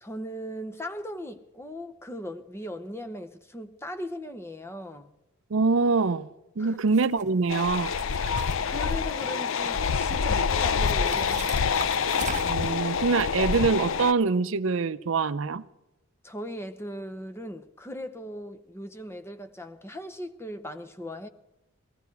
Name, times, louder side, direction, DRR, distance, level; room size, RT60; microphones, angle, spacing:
voice 1, 0.0-5.1 6.6-6.8 8.3-12.0 16.2-21.3, equal, 10° left, 0.8 m, -38 dB
voice 2, 5.5-6.3 6.6-7.9 12.4-15.6, right 4 dB, 65° right, 0.6 m, -24 dB
sound 1, 6.9-7.2 7.7-9.2 9.6-10.2 10.8-12.7, right 5 dB, 35° right, 1.3 m, -40 dB
sound 2, 7.5-14.1, left 6 dB, 70° left, 0.5 m, -26 dB
20.0 x 15.0 x 4.7 m
head